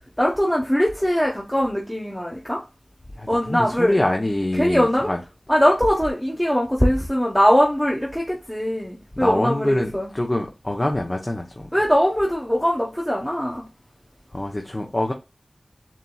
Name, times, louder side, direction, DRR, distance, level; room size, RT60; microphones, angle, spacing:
voice 1, 0.2-2.6 3.3-4.0 4.6-5.1 5.5-10.1 11.7-13.7, equal, 5° left, 1.0 m, -21 dB
voice 2, 3.2-5.2 9.2-11.7 14.3-15.1, left 1 dB, 30° left, 0.7 m, -25 dB
7.3 x 2.7 x 2.2 m
wide cardioid pair, 60°, 0 cm